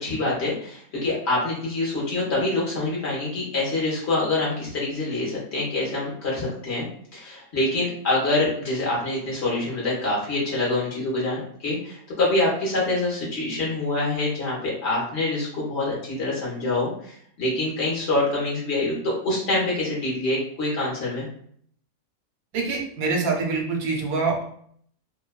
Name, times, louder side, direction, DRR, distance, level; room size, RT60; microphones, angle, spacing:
voice 1, 0.0-6.9 7.1-21.3, left 2 dB, 55° left, -4 dB, 1.1 m, -25 dB
voice 2, 22.5-24.4, right 4 dB, 80° right, 0 dB, 1.1 m, -25 dB
2.7 x 2.1 x 2.2 m, 0.63 s
omnidirectional pair, 1.5 m